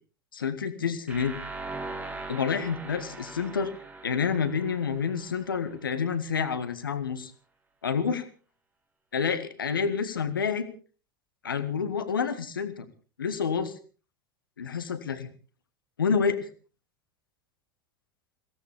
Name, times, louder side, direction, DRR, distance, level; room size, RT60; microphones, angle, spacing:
voice 1, 0.3-1.4 2.3-3.7 4.0-7.3 7.8-8.3 9.1-10.7 11.4-12.9 13.2-13.7 14.6-15.3 16.0-16.5, left 6 dB, 75° left, 11 dB, 1.7 m, -28 dB
sound 1, 1.1-6.0, right 3 dB, 15° right, 2.4 m, -41 dB
22.5 x 17.0 x 3.6 m, 0.38 s
figure-of-eight pair, 80°, 12 cm